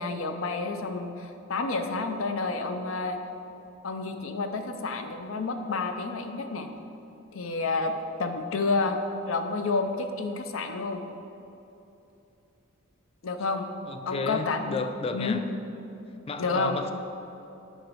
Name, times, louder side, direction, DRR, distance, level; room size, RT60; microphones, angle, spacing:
voice 1, 0.0-3.2 3.8-6.7 7.3-9.0 9.3-11.0 13.2-13.7 14.1-14.8 15.1-15.4 16.4-16.8, left 3 dB, 75° left, 7 dB, 0.6 m, -29 dB
voice 2, 13.9-15.4 16.3-16.9, left 3 dB, 30° left, 8 dB, 0.4 m, -32 dB
8.1 x 4.1 x 6.1 m, 2.9 s
head